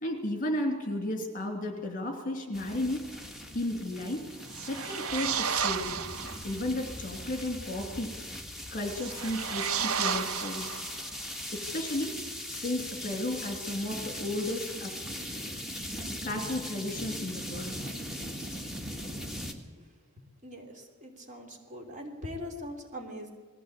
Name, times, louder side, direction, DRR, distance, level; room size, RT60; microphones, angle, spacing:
voice 1, 0.0-3.1 3.5-4.3 4.7-6.0 6.4-8.1 8.7-10.8 11.5-12.2 12.5-14.9 16.2-17.8, left 1 dB, 35° left, 3 dB, 3.1 m, -33 dB
sound 1, 2.5-19.5, equal, ahead, 1.8 m, -40 dB
sound 2, 4.5-6.5 8.9-11.2, right 7 dB, 75° right, 0.7 m, -32 dB
voice 2, 20.4-23.3, left 1 dB, 35° right, 2 dB, 3.1 m, -42 dB
20.5 x 15.5 x 8.4 m, 1.5 s
head